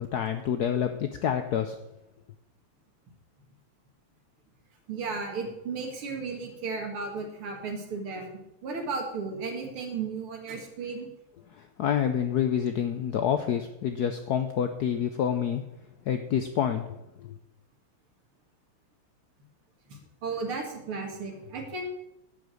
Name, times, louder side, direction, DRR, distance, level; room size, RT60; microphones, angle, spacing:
voice 1, 0.0-1.8 11.8-15.6 16.1-17.0 17.2-17.3, left 8 dB, 75° left, 8 dB, 0.9 m, -27 dB
voice 2, 4.9-8.3 8.6-11.1 19.9-21.9, right 4 dB, 75° right, 2 dB, 2.9 m, -34 dB
11.0 x 5.3 x 7.7 m, 0.89 s
omnidirectional pair, 2.4 m